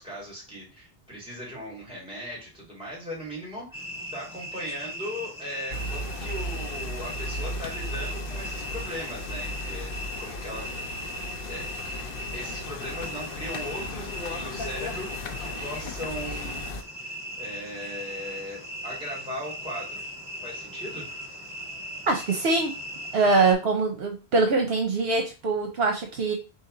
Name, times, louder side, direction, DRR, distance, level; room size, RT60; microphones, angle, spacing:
voice 1, 0.0-10.9 11.5-11.7 12.3-16.7 17.0-20.1 20.4-21.1, left 1 dB, 5° right, -5 dB, 2.6 m, -38 dB
sound 1, 3.7-23.5, equal, 10° left, 1.3 m, -38 dB
sound 2, 5.7-16.8, left 1 dB, 65° left, 0.8 m, -36 dB
voice 2, 22.1-22.7 23.1-26.3, right 3 dB, 70° right, 3 dB, 0.9 m, -23 dB
4.4 x 2.7 x 3.8 m, 0.31 s
omnidirectional pair, 1.1 m